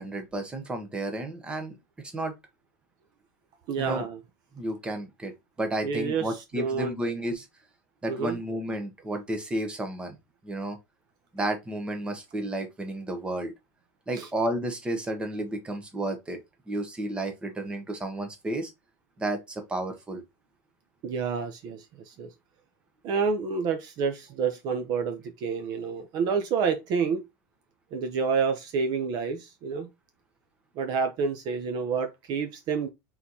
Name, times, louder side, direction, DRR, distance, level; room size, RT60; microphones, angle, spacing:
voice 1, 0.0-1.8 2.0-2.3 3.8-4.0 4.5-5.3 5.6-7.5 8.0-10.1 10.4-10.8 11.3-13.5 14.1-16.4 16.7-18.7 19.2-20.2, right 1 dB, 10° right, 1.0 m, -32 dB
voice 2, 3.7-4.2 5.8-6.9 8.1-8.4 14.1-14.3 21.0-22.3 23.0-27.2 27.9-29.9 30.8-32.9, right 5 dB, 45° right, 0.7 m, -29 dB
4.3 x 3.9 x 2.8 m
supercardioid pair, 145°, 10 cm